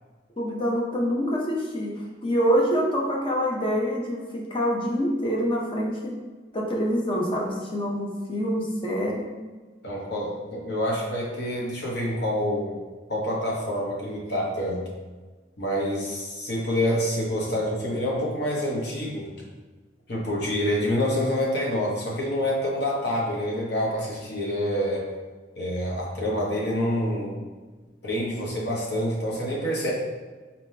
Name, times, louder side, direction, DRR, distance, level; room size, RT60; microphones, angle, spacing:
voice 1, 0.4-6.1 6.5-9.3, equal, 30° left, -2 dB, 0.7 m, -26 dB
voice 2, 9.8-12.8 13.1-14.8 15.6-19.3 20.1-25.0 25.6-27.4 28.0-29.9, equal, 65° left, -3 dB, 1.1 m, -27 dB
4.2 x 3.4 x 2.7 m, 1.3 s
head